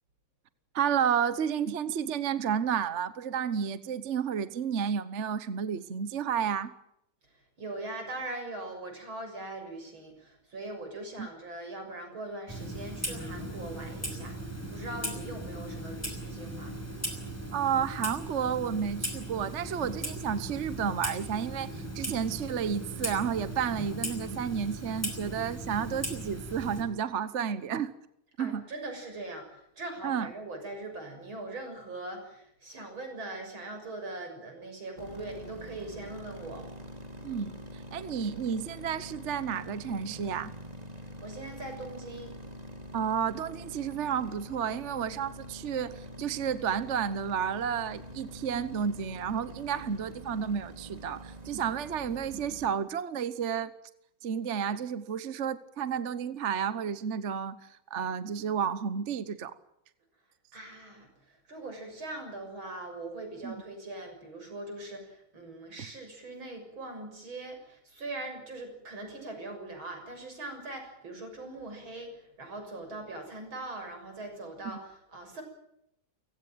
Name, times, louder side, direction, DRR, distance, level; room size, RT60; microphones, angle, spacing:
voice 1, 0.7-6.7 11.2-11.3 17.5-27.9 28.4-28.6 30.0-30.3 37.2-40.5 42.9-53.7 54.2-59.5 63.4-63.6 74.6-74.8, right 7 dB, 45° right, 14 dB, 1.1 m, -31 dB
voice 2, 7.2-14.4 14.7-16.7 28.4-36.7 41.0-42.3 60.5-75.4, right 2 dB, 80° right, 5 dB, 7.5 m, -41 dB
Clock, 12.5-26.8, right 1 dB, 5° left, 5.6 m, -38 dB
sound 1, 35.0-52.7, equal, 20° right, 2.9 m, -45 dB
29.0 x 16.5 x 9.1 m, 0.78 s
omnidirectional pair, 2.2 m